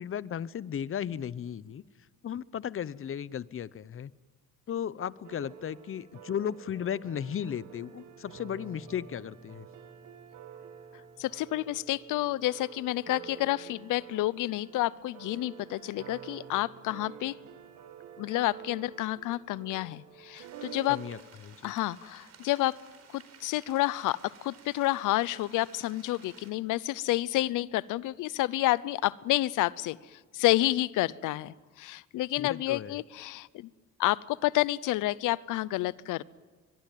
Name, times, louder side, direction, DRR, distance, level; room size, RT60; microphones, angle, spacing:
voice 1, 0.0-1.8 2.2-4.1 4.7-9.7 20.9-21.2 21.4-21.7 32.4-33.0, left 9 dB, 45° left, 19 dB, 0.8 m, -35 dB
sound 1, 5.2-21.2, right 8 dB, 80° right, 2.0 m, -48 dB
voice 2, 11.2-17.3 18.2-21.0 21.6-22.8 23.1-33.7 34.0-36.2, left 17 dB, 90° left, 21 dB, 0.7 m, -29 dB
sound 2, 20.3-26.5, right 6 dB, 60° right, 4.8 m, -55 dB
22.5 x 22.5 x 9.2 m, 1.4 s
cardioid pair, 90°, 30 cm